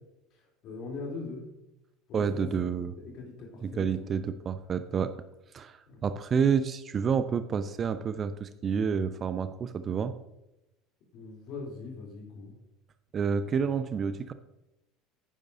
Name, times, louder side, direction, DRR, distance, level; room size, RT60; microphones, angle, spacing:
voice 1, 0.3-1.5 2.1-4.2 5.9-6.0 11.1-12.6, left 3 dB, 50° left, -1 dB, 3.3 m, -42 dB
voice 2, 2.1-2.9 3.6-5.2 5.5-10.2 13.1-14.3, right 6 dB, 35° right, 12 dB, 0.5 m, -29 dB
11.0 x 9.9 x 2.7 m, 0.94 s
figure-of-eight pair, 70°, 0 cm